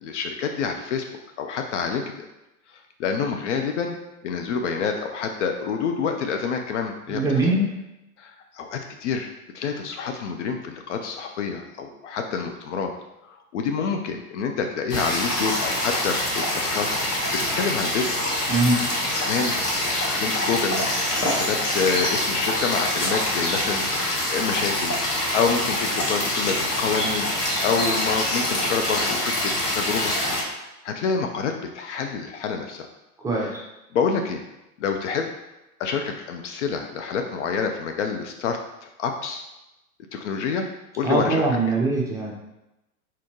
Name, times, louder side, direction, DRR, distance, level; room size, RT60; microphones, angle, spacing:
voice 1, 0.0-1.0 1.4-2.3 3.0-4.0 4.2-7.2 8.2-9.3 9.5-12.9 13.2-18.3 19.2-19.5 19.8-21.0 21.2-25.0 25.3-27.3 27.6-30.1 30.8-32.9 33.4-33.5 33.9-34.4 34.8-35.3 35.8-38.6 39.0-39.4 40.1-40.7 41.0-41.5, left 5 dB, 50° left, 4 dB, 0.6 m, -27 dB
voice 2, 7.1-7.8 18.5-18.8 33.2-33.6 41.0-42.3, right 2 dB, 5° right, -4 dB, 0.8 m, -22 dB
sound 1, 14.9-30.4, left 1 dB, 90° left, 1.3 m, -25 dB
4.3 x 4.1 x 3.0 m, 0.95 s
figure-of-eight pair, 100°, 46 cm